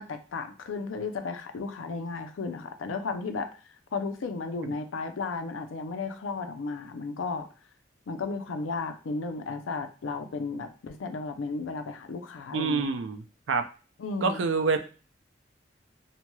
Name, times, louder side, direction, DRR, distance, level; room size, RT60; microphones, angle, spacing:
voice 1, 0.0-3.5 3.9-7.5 8.1-12.9 14.0-14.5, left 4 dB, 90° left, 8 dB, 0.4 m, -34 dB
voice 2, 12.5-13.6 14.2-14.8, right 4 dB, 80° right, 7 dB, 0.4 m, -27 dB
2.9 x 2.7 x 2.2 m, 0.36 s
head